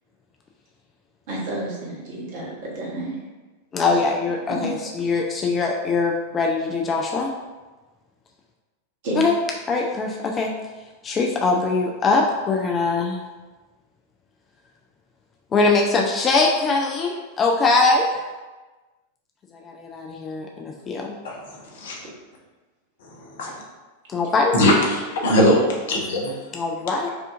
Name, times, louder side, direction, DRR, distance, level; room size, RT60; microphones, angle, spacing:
voice 1, 1.3-3.1 4.5-4.7 9.0-9.2, right 1 dB, 50° right, -5 dB, 1.2 m, -30 dB
voice 2, 3.7-7.3 9.2-9.3 9.7-10.5 11.0-13.2 15.5-18.3 19.5-21.1 24.1-24.5 26.5-27.1, left 3 dB, 25° left, 0 dB, 0.4 m, -22 dB
voice 3, 24.5-26.3, left 1 dB, 60° left, -1 dB, 0.7 m, -20 dB
4.8 x 2.5 x 2.5 m, 1.2 s
figure-of-eight pair, 90°, 0 cm